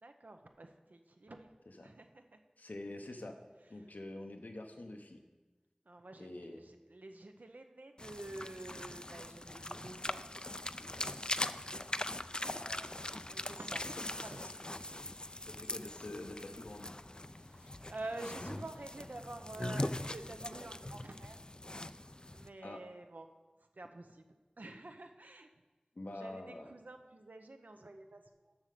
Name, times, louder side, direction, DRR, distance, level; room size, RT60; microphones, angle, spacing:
voice 1, 0.0-1.5 1.8-2.4 5.9-10.7 13.3-13.9 14.2-14.7 14.9-15.1 17.5-21.4 22.3-23.3 23.8-24.2 24.6-25.5 26.1-28.2, right 2 dB, 85° right, 6 dB, 0.7 m, -48 dB
voice 2, 2.6-3.4 3.7-5.2 6.2-6.6 12.6-12.9 13.8-15.0 15.5-16.9 22.6-22.8 26.0-26.7, left 2 dB, 90° left, 4 dB, 0.9 m, -47 dB
pig short, 8.0-22.5, left 1 dB, 30° left, 0.3 m, -41 dB
7.2 x 6.4 x 6.7 m, 1.2 s
wide cardioid pair, 45°, 3 cm